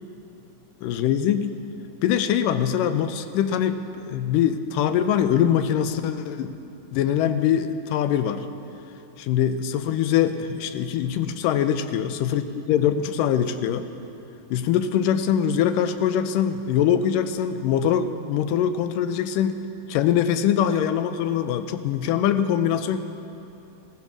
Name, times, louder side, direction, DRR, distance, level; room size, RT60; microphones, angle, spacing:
voice 1, 0.8-1.5 2.0-6.5 6.9-8.5 9.3-13.9 14.5-19.6 19.9-23.0, left 9 dB, 85° left, 10 dB, 2.3 m, -23 dB
15.5 x 15.0 x 6.1 m, 2.7 s
omnidirectional pair, 3.8 m